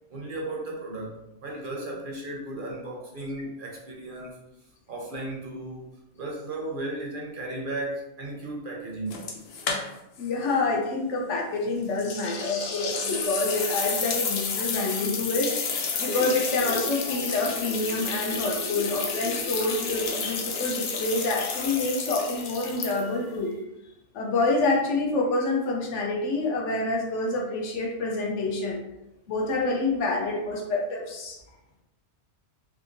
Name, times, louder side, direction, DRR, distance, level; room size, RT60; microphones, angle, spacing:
voice 1, 0.1-4.4 4.9-5.9 6.1-9.3, right 2 dB, 55° right, -1 dB, 0.7 m, -35 dB
sound 1, 9.1-10.2 10.5-10.6 12.0-23.3, left 5 dB, 65° left, 0.7 m, -31 dB
voice 2, 10.2-23.5 24.1-28.8 29.3-31.4, left 2 dB, 85° left, 0 dB, 1.0 m, -27 dB
3.4 x 2.8 x 2.5 m, 0.90 s
omnidirectional pair, 1.2 m